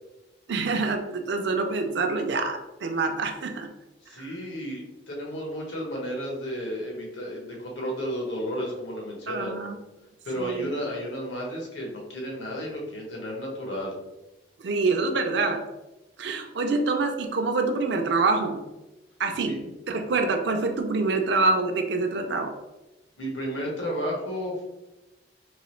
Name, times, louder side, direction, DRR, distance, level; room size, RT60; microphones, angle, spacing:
voice 1, 0.5-3.7 4.2-4.3 9.3-9.7 10.4-10.7 14.6-15.6 16.2-18.6 19.2-22.5, right 3 dB, 65° right, 4 dB, 0.4 m, -26 dB
voice 2, 4.0-9.6 10.2-13.9 19.4-19.5 23.2-24.7, equal, 80° left, -1 dB, 1.2 m, -32 dB
3.8 x 3.0 x 3.1 m, 1.0 s
head